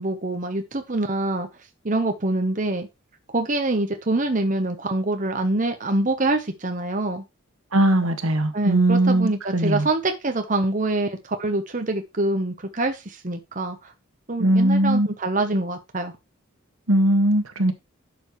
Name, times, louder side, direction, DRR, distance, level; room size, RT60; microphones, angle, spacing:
voice 1, 0.0-1.5 1.8-2.9 3.3-7.2 8.5-13.9 14.3-16.1, right 2 dB, 35° right, 1.0 m, -25 dB
voice 2, 7.7-9.9 14.4-15.1 16.9-17.7, right 1 dB, 85° right, 1.8 m, -19 dB
11.0 x 6.9 x 3.2 m
head